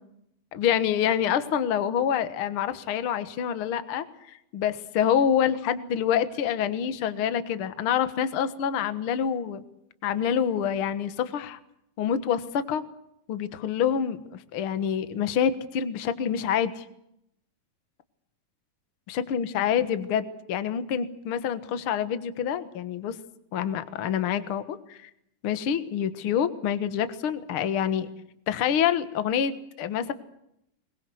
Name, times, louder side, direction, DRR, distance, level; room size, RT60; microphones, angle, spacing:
voice 1, 0.5-9.6 10.0-11.6 12.0-12.8 13.3-16.8 19.1-23.2 23.5-25.1 25.4-28.1 28.5-30.1, left 8 dB, 55° left, 12 dB, 1.5 m, -27 dB
22.5 x 22.0 x 7.9 m, 0.78 s
omnidirectional pair, 4.3 m